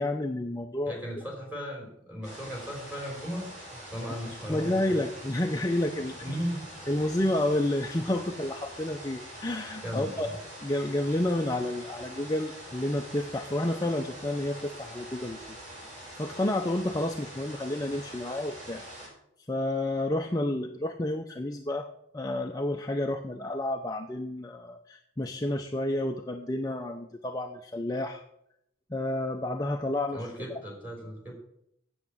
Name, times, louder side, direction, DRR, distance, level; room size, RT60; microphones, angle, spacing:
voice 1, 0.0-1.0 4.5-6.4 6.9-10.3 10.6-15.6 16.2-18.8 19.5-21.9 22.1-28.2 28.9-30.2 30.5-30.6, left 1 dB, 20° left, 3 dB, 0.5 m, -30 dB
voice 2, 0.9-5.0 6.2-6.7 9.8-10.4 30.1-31.3, equal, 10° right, -1 dB, 3.5 m, -37 dB
sound 1, 2.2-19.1, right 1 dB, 35° right, 4.9 m, -45 dB
8.3 x 7.8 x 7.3 m, 0.75 s
head